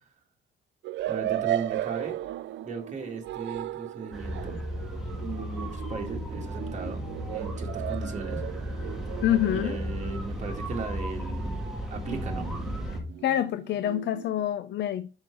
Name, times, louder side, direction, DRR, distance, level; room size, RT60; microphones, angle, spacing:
sound 1, 0.8-10.3 12.0-14.4, right 13 dB, 75° right, 0.4 m, -36 dB
voice 1, 1.1-2.2 2.6-4.6 5.1-8.4 9.5-11.6 11.9-12.5, right 4 dB, 35° right, 1.8 m, -37 dB
sound 2, 4.1-13.0, equal, ahead, 1.6 m, -35 dB
voice 2, 9.2-9.8 13.2-15.1, left 11 dB, 65° left, 0.5 m, -26 dB
6.0 x 5.6 x 4.5 m
cardioid pair, 150°, 19 cm